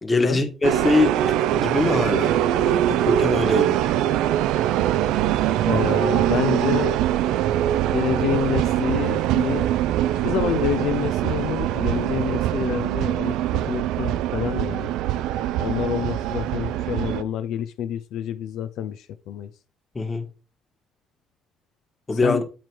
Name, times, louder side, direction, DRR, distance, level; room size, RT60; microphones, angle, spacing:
voice 1, 0.0-3.8 19.9-20.3 22.1-22.4, left 3 dB, 25° left, 1.4 m, -23 dB
sound 1, 0.6-17.2, right 12 dB, 85° right, 0.3 m, -23 dB
voice 2, 5.6-7.0 7.9-9.7 10.1-14.9 15.6-19.5 22.2-22.4, left 9 dB, 75° left, 0.4 m, -28 dB
8.6 x 3.0 x 4.6 m
cardioid pair, 85°, 0 cm